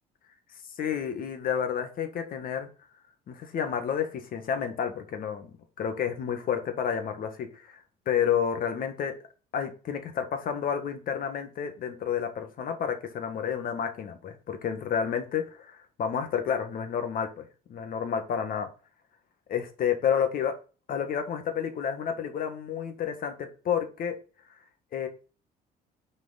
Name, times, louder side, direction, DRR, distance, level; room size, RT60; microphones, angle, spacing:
voice 1, 0.8-2.7 3.3-9.1 9.5-17.4 17.7-18.7 19.5-20.5 20.9-24.2 24.9-25.1, left 8 dB, 55° left, 7 dB, 1.6 m, -30 dB
6.2 x 4.9 x 4.0 m, 0.35 s
cardioid pair, 110°, 17 cm